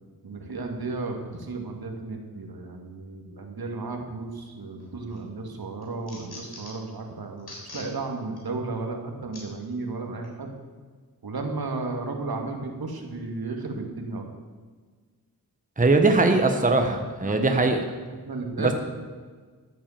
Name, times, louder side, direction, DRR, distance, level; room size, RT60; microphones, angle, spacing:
voice 1, 0.2-10.5 11.2-14.2 17.2-17.6 18.2-18.7, right 3 dB, 75° right, 3 dB, 2.3 m, -34 dB
sound 1, 4.8-5.2 5.6-6.9 7.4-7.9 8.4-8.5 9.3-9.5 10.2-10.4, left 2 dB, 85° left, 4.0 m, -43 dB
voice 2, 15.8-17.8 18.6-18.7, right 3 dB, 20° right, 5 dB, 1.2 m, -21 dB
14.0 x 8.6 x 7.4 m, 1.5 s
wide cardioid pair, 90°, 37 cm